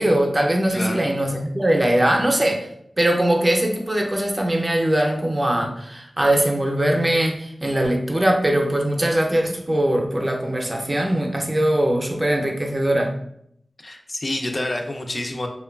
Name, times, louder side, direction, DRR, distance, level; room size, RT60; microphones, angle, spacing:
voice 1, 0.0-2.7 3.0-13.1, right 1 dB, 30° right, 1 dB, 0.5 m, -21 dB
voice 2, 13.8-15.5, left 1 dB, 50° left, 3 dB, 0.3 m, -28 dB
2.9 x 2.2 x 2.3 m, 0.73 s
cardioid pair, 50°, 0 cm